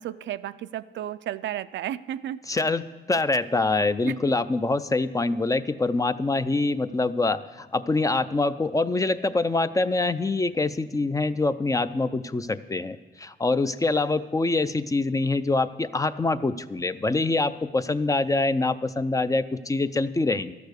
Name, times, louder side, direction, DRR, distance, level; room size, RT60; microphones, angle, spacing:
voice 1, 0.0-2.4 4.0-4.2, right 12 dB, 65° right, 14 dB, 0.4 m, -33 dB
voice 2, 2.5-20.6, left 3 dB, 15° left, 13 dB, 0.4 m, -25 dB
12.0 x 6.8 x 8.0 m, 1.2 s
cardioid pair, 90°, 20 cm